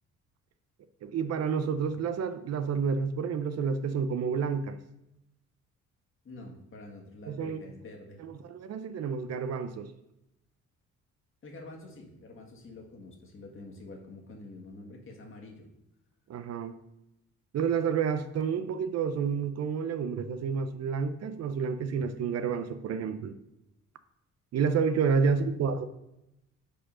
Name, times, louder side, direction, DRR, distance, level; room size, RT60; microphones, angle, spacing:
voice 1, 1.0-4.8 7.3-7.6 8.2-9.9 16.3-16.8 17.5-23.3 24.5-25.8, right 6 dB, 60° right, 0.5 m, -29 dB
voice 2, 6.2-8.2 11.4-15.7 25.2-25.5, left 2 dB, 45° left, 1.6 m, -47 dB
5.1 x 4.5 x 5.5 m
cardioid pair, 90°, 30 cm